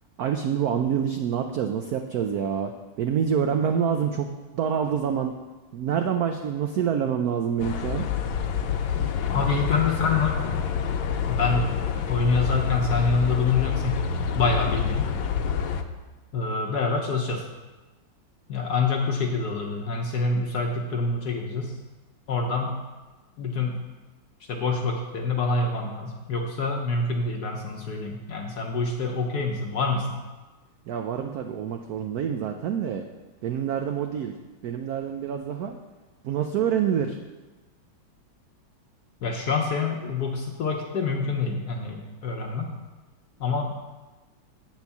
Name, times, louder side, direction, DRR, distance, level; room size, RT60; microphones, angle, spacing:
voice 1, 0.2-2.7 3.0-4.3 4.5-5.3 5.7-8.1 30.9-33.0 33.4-34.3 34.6-35.8 36.2-37.2, right 8 dB, 80° right, 5 dB, 0.8 m, -26 dB
sound 1, 7.6-15.8, left 7 dB, 90° left, 1.4 m, -27 dB
voice 2, 9.3-10.3 11.3-11.7 12.0-14.0 14.3-15.1 16.3-17.4 18.5-21.7 22.3-22.7 23.4-23.8 24.5-30.2 39.2-42.7 43.4-43.7, left 4 dB, 65° left, 1 dB, 1.1 m, -26 dB
7.9 x 4.4 x 6.9 m, 1.2 s
omnidirectional pair, 2.1 m